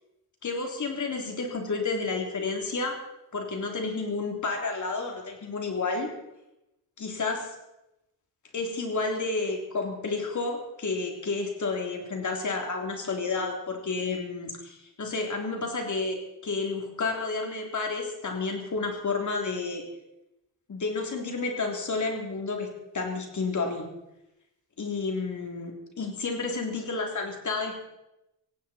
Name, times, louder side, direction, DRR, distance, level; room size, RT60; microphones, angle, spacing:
voice 1, 0.4-3.0 3.3-6.1 7.0-7.5 8.5-16.2 16.4-19.8 20.7-22.7 22.9-23.9 24.8-27.7, left 3 dB, 45° left, 2 dB, 3.4 m, -30 dB
17.5 x 17.0 x 4.4 m, 0.91 s
wide cardioid pair, 145°, 41 cm